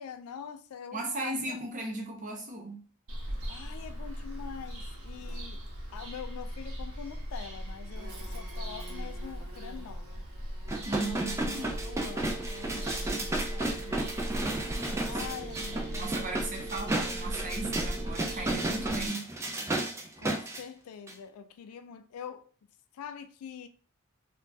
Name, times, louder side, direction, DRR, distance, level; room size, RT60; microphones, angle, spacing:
voice 1, 0.0-1.6 3.5-5.6 5.9-10.3 11.0-11.2 11.8-14.3 15.0-16.1 20.2-22.5 22.9-23.7, left 7 dB, 80° left, 0.3 m, -44 dB
voice 2, 0.9-2.8 10.8-11.7 14.8-19.3, right 2 dB, 35° right, 0.7 m, -37 dB
Bird vocalization bird call bird song, 3.1-19.1, equal, 80° right, 0.8 m, -39 dB
sound 1, 10.7-20.6 21.1-21.2, right 1 dB, 15° right, 0.3 m, -33 dB
Telephone, 10.9-18.9, right 6 dB, 35° left, 0.9 m, -46 dB
2.3 x 2.2 x 3.9 m
head